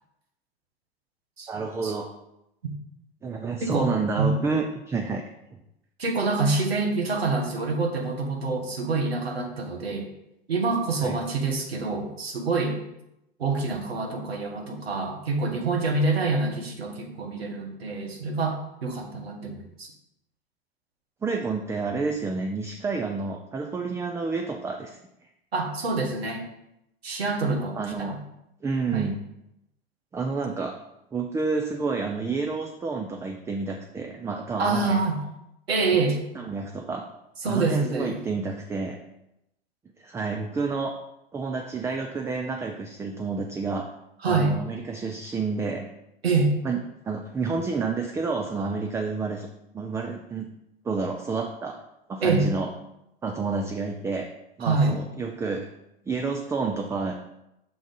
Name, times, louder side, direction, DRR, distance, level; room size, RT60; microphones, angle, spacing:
voice 1, 1.5-2.1 3.2-5.2 11.0-11.2 21.2-25.0 27.7-28.2 28.6-29.2 30.1-30.8 31.1-35.0 36.3-37.1 37.4-39.0 40.0-40.9 41.3-43.9 44.2-45.9 46.6-49.5 49.7-50.5 50.8-51.8 52.1-52.7 53.2-54.3 54.6-55.7 56.1-57.1, right 4 dB, 10° right, 4 dB, 0.4 m, -29 dB
voice 2, 3.6-3.9 4.2-4.4 6.0-10.1 10.5-12.8 13.4-19.9 25.5-26.4 27.0-28.2 28.9-29.1 34.6-35.2 35.7-36.2 37.4-38.2 44.2-44.6 46.2-46.5 52.2-52.5 54.6-55.0, right 3 dB, 85° right, 3 dB, 1.3 m, -26 dB
6.1 x 3.7 x 5.3 m, 0.85 s
hypercardioid pair, 95°, 30 cm